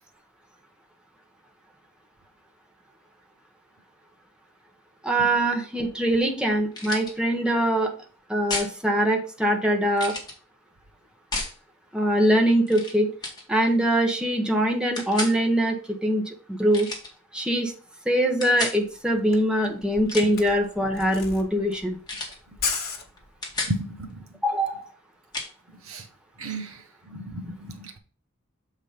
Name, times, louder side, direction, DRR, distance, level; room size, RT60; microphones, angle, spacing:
voice 1, 5.0-7.9 8.3-10.1 11.9-13.1 13.5-16.9 17.3-17.7 18.0-22.0 24.4-24.9, right 1 dB, 5° right, 2 dB, 1.2 m, -23 dB
sound 1, 6.7-7.1 8.5-8.7 10.0-10.3 11.3-11.6 12.7-12.9 13.2-13.4 15.0-15.4 16.7-17.1 18.4-18.8 19.9-20.5 22.1-22.4 22.7-22.9 23.2-23.8 25.3-25.5, left 3 dB, 20° left, 2.0 m, -32 dB
Camera, 18.8-18.9 19.2-23.7, left 5 dB, 45° left, 1.5 m, -34 dB
voice 2, 23.6-24.2 25.9-26.0 26.4-26.8 27.1-28.0, right 1 dB, 70° right, 7 dB, 1.2 m, -33 dB
7.4 x 4.0 x 5.1 m, 0.39 s
head